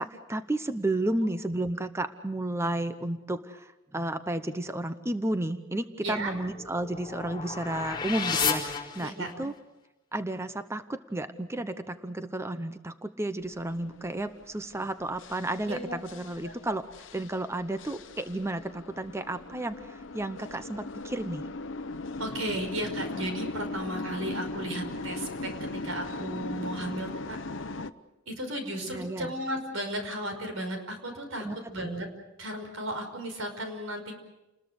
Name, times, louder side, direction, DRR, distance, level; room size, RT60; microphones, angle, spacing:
voice 1, 0.0-9.5 10.1-16.8 17.1-21.4 28.8-29.3 31.4-31.9, right 1 dB, 15° right, 10 dB, 0.8 m, -32 dB
voice 2, 6.0-6.3 9.0-9.3 15.6-16.0 16.4-16.5 22.2-27.4 28.3-32.1 32.4-34.1, right 1 dB, 90° right, 5 dB, 5.5 m, -35 dB
sound 1, 6.2-9.6, left 6 dB, 20° left, 4.4 m, -33 dB
sound 2, 13.4-27.9, left 2 dB, 65° left, 0.9 m, -39 dB
30.0 x 20.5 x 6.5 m, 1.0 s
head